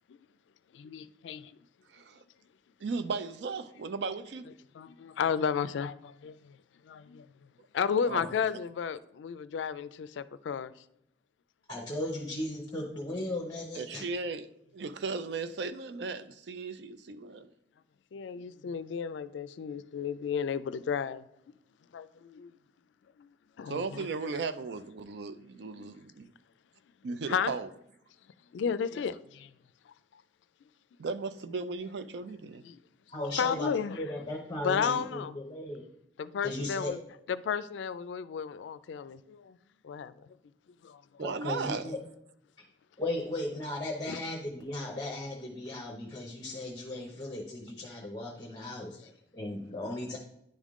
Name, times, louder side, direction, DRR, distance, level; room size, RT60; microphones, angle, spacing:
voice 1, 0.7-1.5 4.7-6.6 6.8-7.3 7.7-10.7 18.1-21.3 21.9-22.5 23.2-23.3 23.6-24.1 25.8-25.9 27.3-27.5 28.5-29.5 32.6-32.8 33.4-34.0 34.6-35.3 36.2-37.0 37.3-39.6 39.8-40.3 40.8-41.0 44.1-44.2, left 7 dB, 80° left, 0.3 m, -33 dB
voice 2, 1.9-2.2 2.8-4.5 8.0-8.3 13.7-14.5 14.7-17.5 23.7-26.3 27.0-27.7 31.0-32.6 41.2-41.9, right 4 dB, 65° right, 0.4 m, -36 dB
voice 3, 11.7-14.1 33.1-35.8 36.4-36.9 41.2-42.0 43.0-50.2, left 1 dB, 20° left, 0.8 m, -36 dB
10.0 x 3.6 x 3.6 m
head